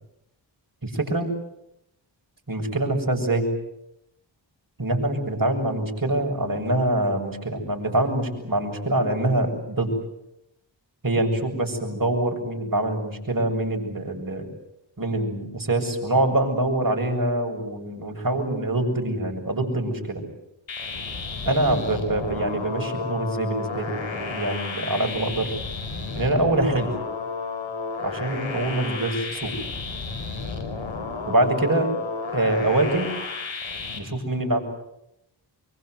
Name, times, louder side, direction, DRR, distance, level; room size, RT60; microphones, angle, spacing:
voice 1, 0.8-1.3 2.5-3.5 4.8-10.0 11.0-14.5 15.0-20.2 21.4-25.5 26.2-26.9 28.0-29.5 31.3-32.0 32.3-33.1 34.0-34.6, right 1 dB, 45° right, 2 dB, 7.6 m, -24 dB
sound 1, 20.7-34.0, left 4 dB, 85° left, 4.7 m, -32 dB
25.0 x 24.0 x 8.1 m, 0.81 s
cardioid pair, 45°, 46 cm